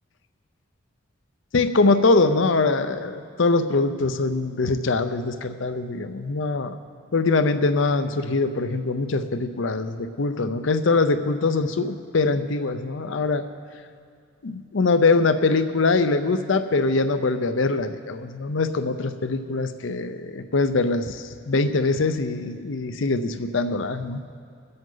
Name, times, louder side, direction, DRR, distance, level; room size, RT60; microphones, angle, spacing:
voice 1, 1.5-6.7 7.1-13.5 14.4-24.2, left 3 dB, 65° left, 10 dB, 0.6 m, -23 dB
23.0 x 7.8 x 3.9 m, 2.4 s
head